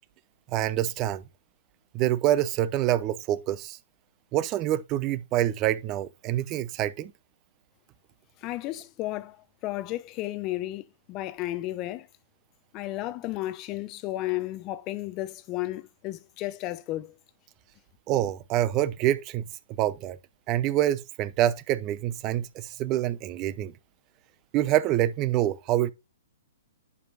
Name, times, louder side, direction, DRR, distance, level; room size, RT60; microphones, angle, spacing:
voice 1, 0.5-1.2 1.9-3.8 4.3-7.1 18.1-19.5 19.8-20.2 20.5-23.7 24.5-25.9, right 13 dB, 30° right, 0.7 m, -26 dB
voice 2, 8.4-9.4 9.6-12.1 12.7-17.1, left 16 dB, 35° left, 0.7 m, -33 dB
11.0 x 5.1 x 2.5 m
hypercardioid pair, 130°, 0 cm